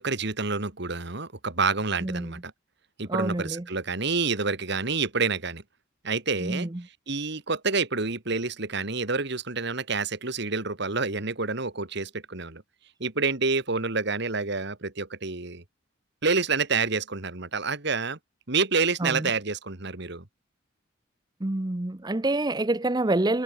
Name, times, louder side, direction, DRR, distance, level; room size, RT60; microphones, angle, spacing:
voice 1, 0.0-2.5 3.0-5.6 6.0-6.7 7.1-12.6 13.0-15.6 16.2-18.2 18.5-20.2, right 4 dB, 55° right, 2.2 m, -28 dB
voice 2, 2.0-2.4 3.1-3.6 6.4-6.8 19.0-19.3 21.4-23.4, right 2 dB, 20° right, 0.7 m, -27 dB
head